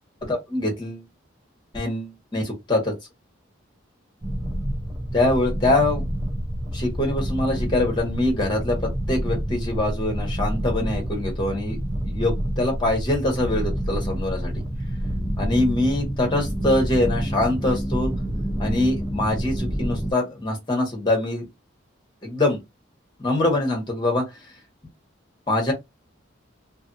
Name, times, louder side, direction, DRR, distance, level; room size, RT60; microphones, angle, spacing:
voice 1, 0.3-1.0 1.7-2.9 5.1-6.1 6.7-8.8 9.1-11.8 12.0-14.6 15.4-18.1 18.6-21.5 22.2-22.6 23.2-24.2 25.5-25.7, left 2 dB, 25° left, 1.2 m, -24 dB
sound 1, 4.2-20.1, equal, 15° right, 0.6 m, -28 dB
2.6 x 2.6 x 2.6 m
head